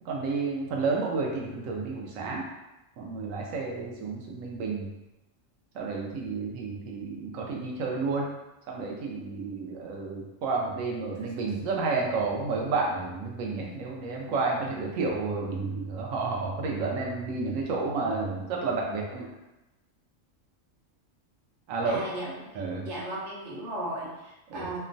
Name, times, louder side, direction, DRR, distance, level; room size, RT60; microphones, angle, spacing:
voice 1, 0.0-2.4 3.0-4.9 5.7-8.3 8.7-19.3 21.7-22.0 22.5-22.9 24.5-24.7, right 4 dB, 90° right, -1 dB, 1.0 m, -31 dB
voice 2, 21.8-22.3 22.6-24.8, right 1 dB, 65° right, -5 dB, 1.0 m, -36 dB
2.9 x 2.1 x 2.5 m, 0.98 s
omnidirectional pair, 1.3 m